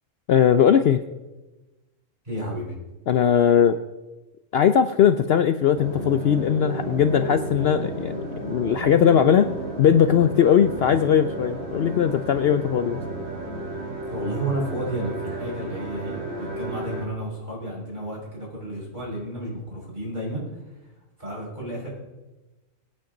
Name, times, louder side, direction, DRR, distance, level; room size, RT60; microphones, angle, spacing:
voice 1, 0.3-1.0 3.1-3.8 4.5-8.2 8.5-9.5 9.8-13.0, left 8 dB, 60° left, 10 dB, 0.7 m, -19 dB
voice 2, 2.2-2.7 14.0-20.4 20.8-20.9 21.2-21.9, right 1 dB, 35° right, -4 dB, 5.9 m, -32 dB
sound 1, 5.7-17.1, right 1 dB, 80° right, 5.0 m, -33 dB
23.0 x 8.9 x 3.9 m, 1.1 s
omnidirectional pair, 1.4 m